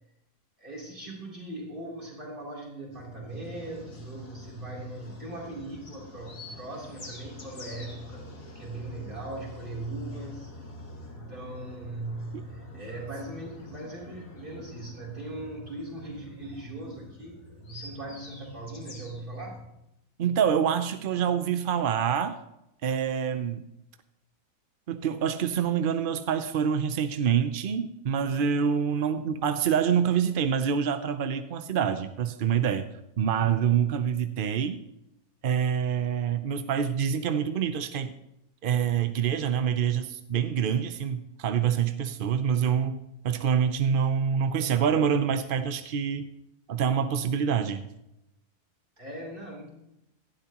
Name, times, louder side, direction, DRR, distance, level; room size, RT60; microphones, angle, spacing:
voice 1, 0.6-8.3 8.5-10.5 11.1-19.7 49.0-49.7, right 2 dB, 30° right, -2 dB, 3.7 m, -39 dB
sound 1, 2.9-19.6, left 1 dB, 60° left, 2.6 m, -46 dB
voice 2, 20.2-22.4 22.8-23.6 24.9-32.9 33.2-34.8 35.4-38.1 38.6-43.0 43.2-46.3 46.7-47.9, right 8 dB, 60° right, 10 dB, 0.5 m, -26 dB
17.5 x 12.0 x 3.0 m, 0.85 s
omnidirectional pair, 1.7 m